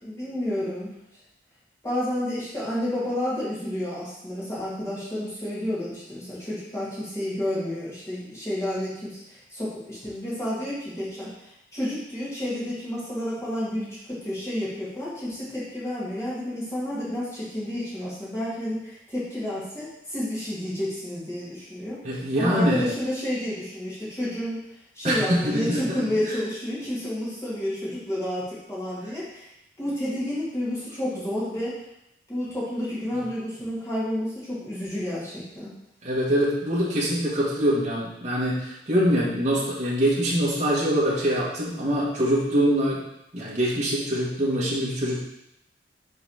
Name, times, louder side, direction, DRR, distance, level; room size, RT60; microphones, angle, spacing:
voice 1, 0.0-0.9 1.8-24.6 25.0-29.5 29.8-31.8 32.3-35.7, left 1 dB, 15° left, -9 dB, 2.1 m, -30 dB
voice 2, 22.0-22.9 25.0-26.0 36.0-43.0 43.3-45.2, equal, 40° right, -7 dB, 1.6 m, -24 dB
5.6 x 3.9 x 5.6 m, 0.81 s
head